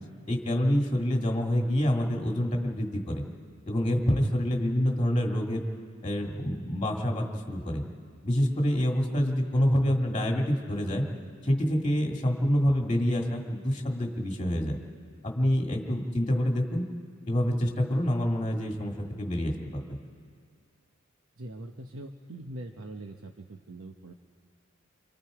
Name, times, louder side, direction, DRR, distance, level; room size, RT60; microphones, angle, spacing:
voice 1, 0.3-3.2 3.7-5.6 6.0-7.8 8.2-11.0 11.4-14.8 15.2-16.8 17.3-20.0, equal, 25° left, 1 dB, 1.9 m, -27 dB
voice 2, 21.4-24.1, right 1 dB, 85° right, 4 dB, 1.0 m, -42 dB
27.5 x 26.5 x 4.9 m, 2.2 s
head